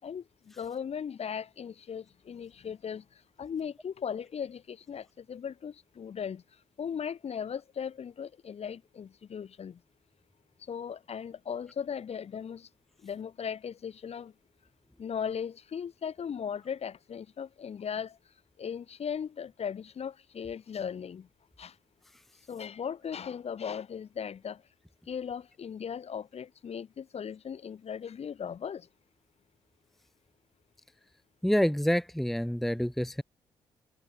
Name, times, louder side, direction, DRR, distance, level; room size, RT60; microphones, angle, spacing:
voice 1, 0.0-6.4 6.8-9.8 10.6-12.7 13.0-14.3 15.0-18.2 18.6-21.3 21.6-21.8 22.5-24.6 25.1-28.9, left 7 dB, 55° left, 4.3 m, -38 dB
voice 2, 31.4-33.2, equal, ahead, 0.7 m, -27 dB
supercardioid pair, 55°, 12 cm